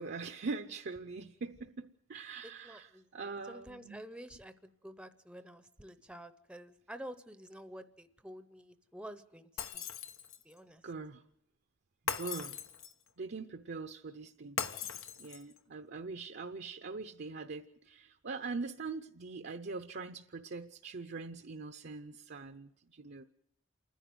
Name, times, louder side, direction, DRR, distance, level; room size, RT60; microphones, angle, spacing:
voice 1, 0.0-4.0 10.8-11.2 12.1-12.6 13.2-14.6 15.2-23.2, right 4 dB, 55° right, 0.7 m, -42 dB
voice 2, 2.4-9.9 10.4-10.8, equal, 5° right, 0.7 m, -50 dB
Shatter, 9.6-10.5 12.1-13.1 14.6-15.6, left 7 dB, 85° left, 1.2 m, -39 dB
28.5 x 10.5 x 9.5 m
head